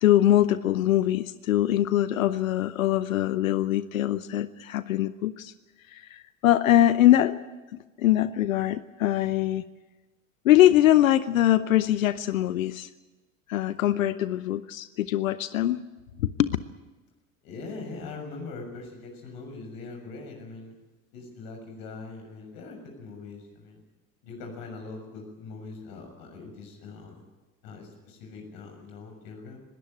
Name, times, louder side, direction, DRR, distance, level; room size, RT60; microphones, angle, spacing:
voice 1, 0.0-5.5 5.9-7.4 8.0-9.6 10.4-12.9 13.5-15.8 16.4-16.6, left 13 dB, 75° left, 15 dB, 0.8 m, -22 dB
voice 2, 17.4-20.8 21.1-23.8 24.2-27.2 27.6-29.6, left 3 dB, 55° left, 3 dB, 6.9 m, -42 dB
20.5 x 17.5 x 9.3 m, 1.2 s
figure-of-eight pair, 70°, 41 cm